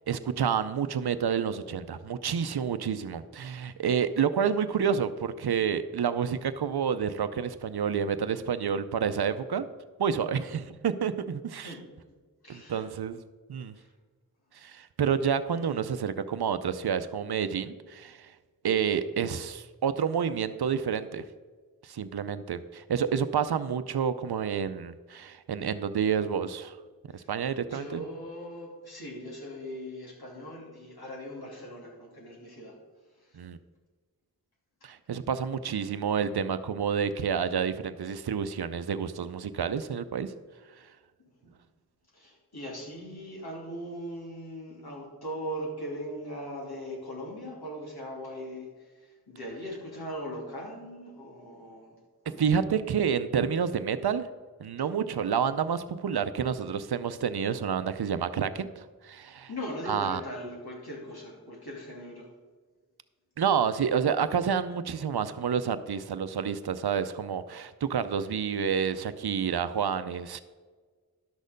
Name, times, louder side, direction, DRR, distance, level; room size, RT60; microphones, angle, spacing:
voice 1, 0.1-9.7 10.0-11.7 12.5-13.2 13.5-13.7 14.5-18.3 18.6-21.2 21.8-26.8 27.1-28.0 33.3-33.6 34.8-40.3 52.4-54.3 54.6-59.5 59.9-60.2 63.4-70.4, right 7 dB, 85° right, 12 dB, 0.6 m, -29 dB
voice 2, 12.4-12.9 13.7-13.9 27.1-32.7 33.2-33.4 41.4-41.5 42.1-52.0 52.2-52.4 59.5-62.3, equal, 80° left, -3 dB, 3.0 m, -40 dB
11.0 x 6.5 x 5.2 m, 1.4 s
wide cardioid pair, 45°, 37 cm